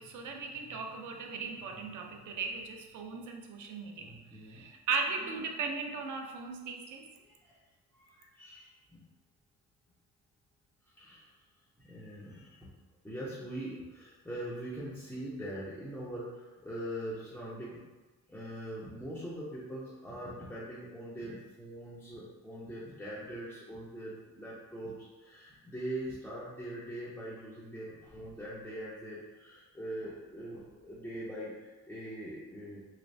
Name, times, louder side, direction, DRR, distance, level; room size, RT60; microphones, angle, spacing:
voice 1, 0.0-4.1 4.5-7.0, right 4 dB, 65° right, 2 dB, 0.5 m, -37 dB
voice 2, 4.0-4.6 7.2-7.6 7.9-9.0 11.0-11.3 11.8-12.7 13.0-17.8 18.3-32.8, right 1 dB, 5° left, -9 dB, 0.4 m, -42 dB
3.2 x 3.0 x 2.6 m, 1.2 s
cardioid pair, 170°, 33 cm